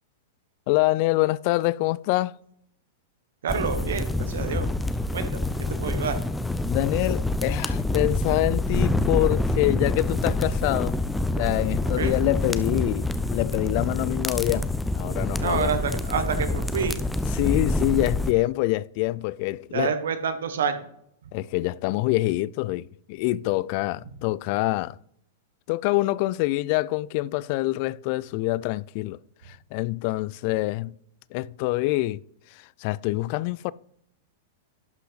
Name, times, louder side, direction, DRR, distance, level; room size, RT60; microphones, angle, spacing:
voice 1, 0.7-2.3 5.8-5.9 6.6-11.0 11.4-14.7 15.0-15.7 17.3-19.9 21.3-25.0 25.7-29.2 29.5-30.9 31.3-32.2 32.8-33.7, left 19 dB, 50° left, 0.3 m, -25 dB
voice 2, 3.4-4.7 5.1-6.2 11.9-12.1 15.4-17.0 19.7-20.9, right 6 dB, 80° right, 1.2 m, -28 dB
sound 1, 3.5-18.3, left 2 dB, 5° left, 0.6 m, -26 dB
11.5 x 5.6 x 4.0 m
hypercardioid pair, 115°, 0 cm